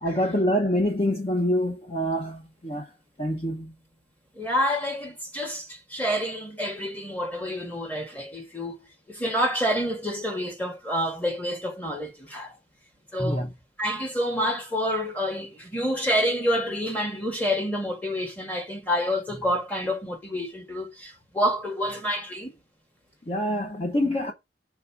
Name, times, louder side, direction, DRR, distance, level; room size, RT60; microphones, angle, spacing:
voice 1, 0.0-2.9 3.2-3.7 13.2-13.5 23.3-24.3, equal, 30° left, 0.9 m, -26 dB
voice 2, 4.3-8.7 9.1-12.6 13.1-13.5 13.8-22.5, equal, 10° left, 1.6 m, -28 dB
6.5 x 3.6 x 5.9 m
head